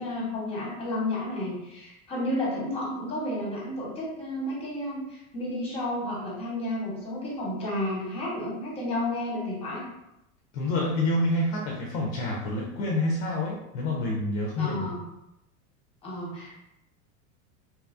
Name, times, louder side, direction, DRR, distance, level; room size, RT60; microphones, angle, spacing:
voice 1, 0.0-9.8 14.6-15.0 16.0-16.6, left 1 dB, 15° left, -4 dB, 1.0 m, -32 dB
voice 2, 10.5-14.9, left 1 dB, 50° left, -1 dB, 0.5 m, -27 dB
2.8 x 2.3 x 2.5 m, 0.87 s
supercardioid pair, 135°, 40 cm